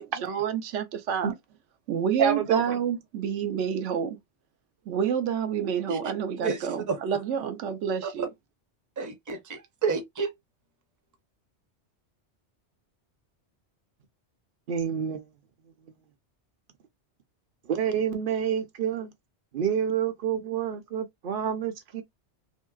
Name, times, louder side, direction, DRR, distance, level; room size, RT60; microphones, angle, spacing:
voice 1, 0.0-1.3 1.9-4.2 4.9-8.3, right 7 dB, 90° right, 1.0 m, -28 dB
voice 2, 2.2-2.8 14.7-15.3 17.6-19.1 19.5-22.0, right 8 dB, 55° right, 0.8 m, -28 dB
voice 3, 6.4-7.0 8.0-8.1 9.0-10.3, right 4 dB, 20° right, 0.5 m, -30 dB
3.0 x 2.8 x 2.3 m
omnidirectional pair, 1.2 m